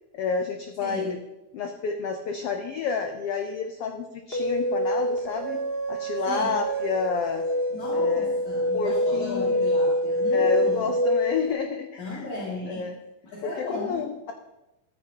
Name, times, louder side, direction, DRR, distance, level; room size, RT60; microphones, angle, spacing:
voice 1, 0.1-1.2 1.5-5.6 5.9-7.4 7.9-8.4 8.7-9.7 10.3-12.3 12.6-13.0 13.4-14.3, left 5 dB, 85° left, 5 dB, 1.3 m, -30 dB
voice 2, 0.8-1.1 6.3-6.6 7.7-10.9 12.0-12.9 13.2-14.0, left 3 dB, 65° left, -7 dB, 3.9 m, -36 dB
sound 1, 4.3-11.5, left 1 dB, 20° left, 1.7 m, -25 dB
15.0 x 13.5 x 2.9 m, 0.99 s
omnidirectional pair, 3.7 m